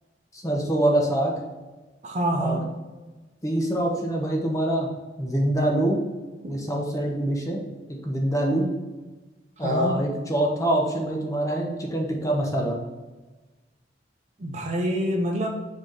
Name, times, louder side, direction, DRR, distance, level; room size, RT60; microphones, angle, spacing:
voice 1, 0.4-1.3 2.4-2.6 3.4-4.9 5.2-6.0 6.5-7.6 8.0-8.7 9.6-12.8, right 1 dB, 20° left, -1 dB, 1.1 m, -24 dB
voice 2, 2.0-2.7 6.4-6.6 9.6-10.0 14.4-15.5, right 1 dB, 40° right, 2 dB, 0.8 m, -26 dB
6.4 x 3.2 x 5.5 m, 1.2 s
head